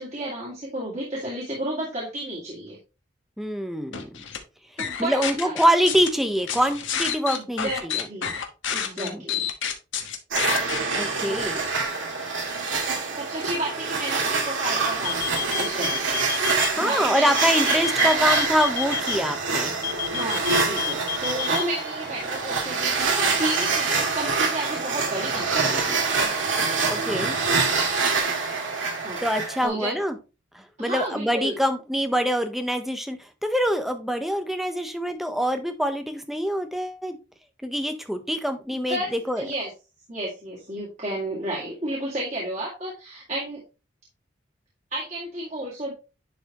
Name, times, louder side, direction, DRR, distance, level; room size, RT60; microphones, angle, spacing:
voice 1, 0.0-2.8 4.8-5.5 7.3-8.4 8.7-9.4 11.2-11.7 13.1-16.2 16.8-17.3 17.7-18.2 20.1-26.0 29.0-29.2 29.6-30.0 30.8-31.6 38.7-39.7 40.1-43.6 44.9-45.9, right 1 dB, 35° right, -6 dB, 2.3 m, -32 dB
voice 2, 3.4-4.1 5.0-8.1 9.0-9.2 10.9-11.6 16.8-19.8 26.9-27.4 29.2-30.1 30.5-37.2 37.6-39.0 39.3-39.4, equal, ahead, 7 dB, 0.8 m, -25 dB
sound 1, 3.9-4.4 4.8-6.1 6.5-10.8, left 8 dB, 80° left, 1.2 m, -29 dB
sound 2, 10.3-29.7, right 4 dB, 80° right, 1.9 m, -25 dB
sound 3, 15.0-16.7 17.4-19.2 19.8-21.6, left 11 dB, 45° left, 0.9 m, -29 dB
10.5 x 4.0 x 3.0 m, 0.30 s
head